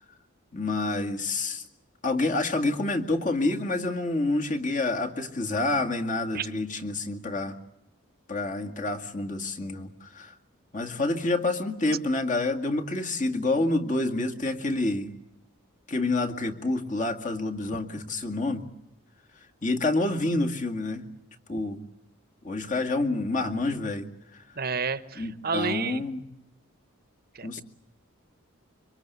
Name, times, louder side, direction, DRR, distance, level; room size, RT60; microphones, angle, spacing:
voice 1, 0.5-1.6 2.0-7.5 8.3-10.3 10.7-15.1 15.9-18.6 19.6-21.0 21.5-21.8 22.4-24.1 25.2-26.2 27.4-27.6, left 2 dB, 35° left, 3 dB, 2.1 m, -28 dB
voice 2, 24.6-26.0 27.3-27.6, right 5 dB, 45° right, 12 dB, 1.0 m, -30 dB
25.5 x 24.0 x 8.2 m, 0.87 s
head